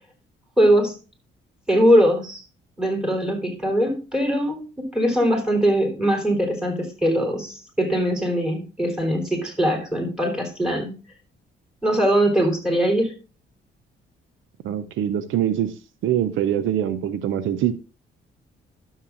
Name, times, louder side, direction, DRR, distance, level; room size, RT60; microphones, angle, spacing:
voice 1, 0.6-1.0 1.7-2.4 2.8-10.9 11.8-13.1, equal, 5° right, 3.5 m, -21 dB
voice 2, 14.6-15.7 16.0-17.7, right 10 dB, 80° right, 0.6 m, -23 dB
12.5 x 7.2 x 2.5 m
cardioid pair, 90°, 20 cm